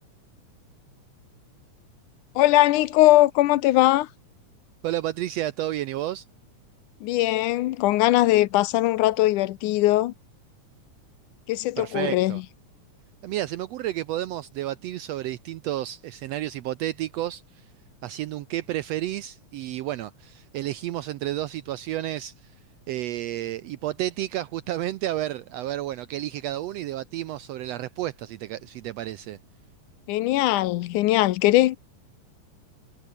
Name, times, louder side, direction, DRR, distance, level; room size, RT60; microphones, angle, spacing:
voice 1, 2.4-4.1 7.0-10.1 11.5-12.4 30.1-31.8, left 16 dB, 80° left, 2.3 m, -20 dB
voice 2, 4.8-6.2 11.8-12.4 13.2-17.6 18.0-22.5 22.9-29.4, right 14 dB, 75° right, 1.5 m, -31 dB
omnidirectional pair, 3.6 m